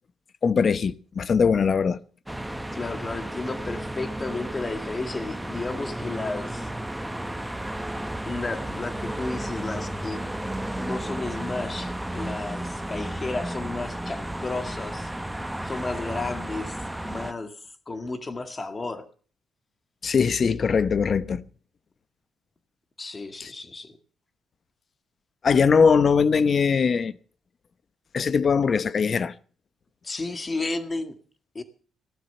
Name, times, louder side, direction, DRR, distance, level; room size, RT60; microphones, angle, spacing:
voice 1, 0.4-2.0 20.0-21.4 23.4-23.5 25.4-27.1 28.1-29.3, left 5 dB, 35° left, 0.9 m, -21 dB
sound 1, 2.3-17.3, right 1 dB, 5° right, 0.9 m, -33 dB
voice 2, 2.7-6.7 8.2-10.2 10.8-15.1 15.6-16.8 17.0-17.5 17.9-19.1 23.0-24.0 30.0-31.2 31.5-31.6, left 3 dB, 20° left, 2.0 m, -33 dB
16.0 x 12.0 x 6.9 m
cardioid pair, 140°, 0 cm